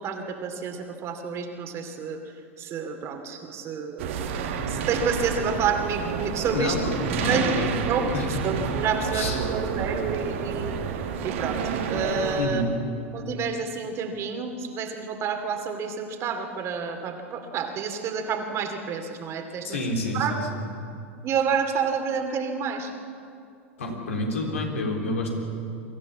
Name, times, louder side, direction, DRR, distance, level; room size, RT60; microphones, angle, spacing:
voice 1, 0.0-2.2 2.6-4.3 4.7-6.8 7.1-7.6 7.9-8.2 8.4-10.7 11.2-12.6 13.1-19.8 20.1-20.3 21.2-22.9, right 6 dB, 40° right, 5 dB, 2.5 m, -29 dB
sound 1, 4.0-12.4, right 6 dB, 65° right, 1.9 m, -29 dB
voice 2, 7.2-7.7 8.1-8.4 9.1-9.4 12.4-12.7 19.6-20.6 23.8-25.3, left 2 dB, 75° left, 1 dB, 3.7 m, -28 dB
24.0 x 14.0 x 8.4 m, 2.5 s
figure-of-eight pair, 90°, 7 cm